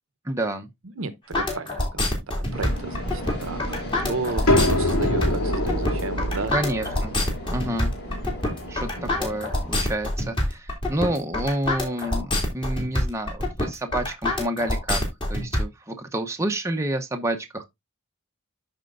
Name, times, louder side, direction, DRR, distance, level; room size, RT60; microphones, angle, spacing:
voice 1, 0.2-0.7 6.5-7.1 7.5-7.9 8.7-15.0 15.3-17.6, right 1 dB, 15° right, 0.8 m, -29 dB
voice 2, 0.8-6.5 9.0-9.3, right 3 dB, 65° right, 0.9 m, -34 dB
sound 1, 1.3-15.6, left 1 dB, 25° left, 2.6 m, -26 dB
sound 2, 2.5-9.9, equal, 50° left, 3.8 m, -36 dB
sound 3, 4.5-10.1, left 1 dB, 90° left, 2.9 m, -26 dB
13.0 x 4.4 x 2.5 m
head